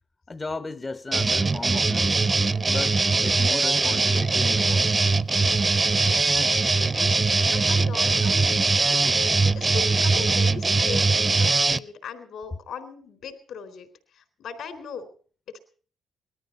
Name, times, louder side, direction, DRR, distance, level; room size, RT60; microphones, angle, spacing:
voice 1, 0.3-2.3 2.6-4.9, left 3 dB, 25° left, 0.7 m, -35 dB
sound 1, 1.1-11.8, right 3 dB, 25° right, 0.7 m, -21 dB
voice 2, 6.9-7.2 7.5-9.0 9.2-13.9 14.1-15.1 15.5-15.6, left 6 dB, 70° left, 3.8 m, -38 dB
20.0 x 13.5 x 5.4 m
cardioid pair, 90°, 0 cm